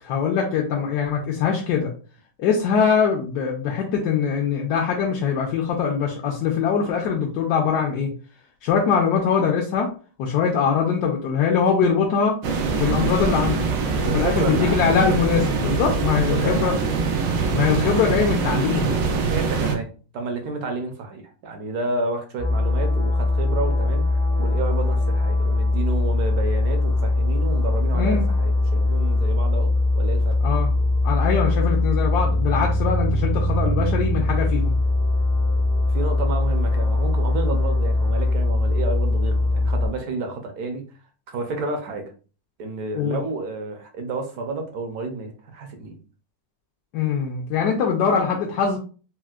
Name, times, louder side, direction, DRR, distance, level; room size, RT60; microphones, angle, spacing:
voice 1, 0.0-1.9 2.4-8.1 8.6-9.9 10.2-12.4 12.8-13.6 14.1-16.8 17.5-18.9 27.9-28.3 30.4-30.7 31.0-34.7 42.9-43.2 46.9-48.8, left 6 dB, 75° left, -1 dB, 1.1 m, -22 dB
sound 1, 12.4-19.8, right 4 dB, 90° right, 1.3 m, -23 dB
voice 2, 13.9-14.9 16.3-17.0 19.2-19.9 20.1-30.4 35.9-40.8 41.3-42.1 42.6-46.0, right 3 dB, 65° right, 5 dB, 1.0 m, -30 dB
sound 2, 22.4-39.9, left 2 dB, 40° left, 0.5 m, -21 dB
4.4 x 2.0 x 2.3 m, 0.38 s
omnidirectional pair, 1.9 m